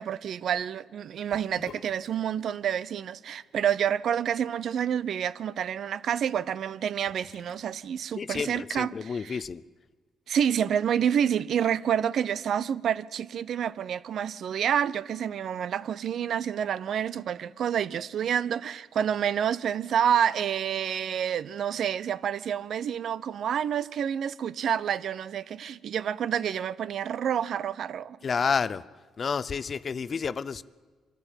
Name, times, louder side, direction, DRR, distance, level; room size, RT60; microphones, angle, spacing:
voice 1, 0.0-9.4 10.3-28.2, right 8 dB, 65° right, 0.6 m, -28 dB
Sink (filling or washing) / Bathtub (filling or washing), 1.3-8.6, left 5 dB, 75° left, 1.8 m, -56 dB
voice 2, 8.2-9.6 28.2-28.9 29.2-30.6, left 6 dB, 45° left, 0.6 m, -30 dB
24.0 x 13.5 x 9.0 m
cardioid pair, 90°, 0 cm